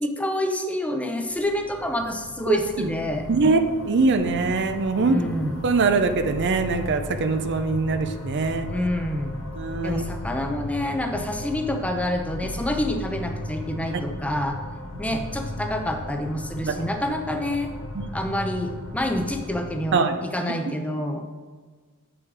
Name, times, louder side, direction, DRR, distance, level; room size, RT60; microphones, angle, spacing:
voice 1, 0.0-3.3 5.0-5.5 8.7-9.4 9.8-14.6 15.0-17.7 18.1-21.2, left 1 dB, 5° left, 4 dB, 0.6 m, -27 dB
sound 1, 1.3-19.9, left 1 dB, 70° left, 0.9 m, -36 dB
voice 2, 2.5-2.9 3.3-5.2 5.6-8.7 9.6-10.1 16.7-16.8 17.9-18.0 19.9-20.3, right 3 dB, 55° right, 8 dB, 0.5 m, -22 dB
6.4 x 6.1 x 4.8 m, 1.5 s
head